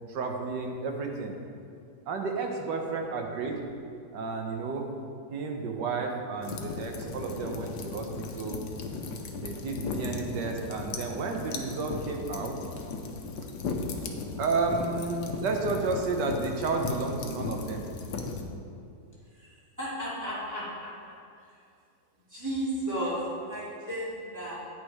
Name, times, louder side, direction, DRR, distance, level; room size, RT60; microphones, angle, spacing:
voice 1, 0.1-1.3 2.1-3.6 4.1-4.9 5.3-8.7 9.4-12.6 14.4-17.8, right 4 dB, 80° right, 3 dB, 1.5 m, -32 dB
sound 1, 6.4-18.4, left 4 dB, 75° left, 1.3 m, -36 dB
voice 2, 19.4-21.2 22.3-24.5, right 1 dB, 10° right, -9 dB, 2.4 m, -34 dB
9.2 x 6.4 x 4.8 m, 2.4 s
omnidirectional pair, 1.9 m